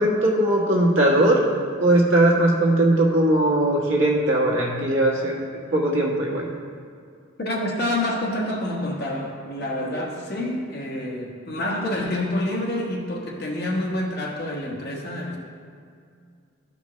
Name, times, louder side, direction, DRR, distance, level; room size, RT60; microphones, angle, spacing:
voice 1, 0.0-1.4 1.8-5.4 5.7-6.5, right 1 dB, 75° right, -3 dB, 1.4 m, -19 dB
voice 2, 7.4-15.4, left 1 dB, 50° left, -2 dB, 1.2 m, -27 dB
12.5 x 5.2 x 3.1 m, 2.3 s
head